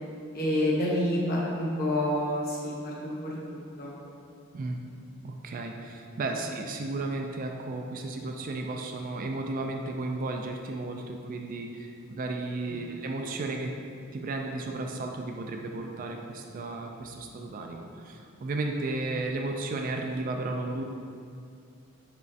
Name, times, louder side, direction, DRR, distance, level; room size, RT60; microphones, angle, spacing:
voice 1, 0.3-3.9 6.3-6.4 12.7-12.9, left 1 dB, 45° left, -4 dB, 0.9 m, -29 dB
voice 2, 5.2-11.7 12.1-13.7 14.1-17.9 18.4-20.8, right 2 dB, 40° right, 3 dB, 0.3 m, -33 dB
6.2 x 3.1 x 2.7 m, 2.4 s
head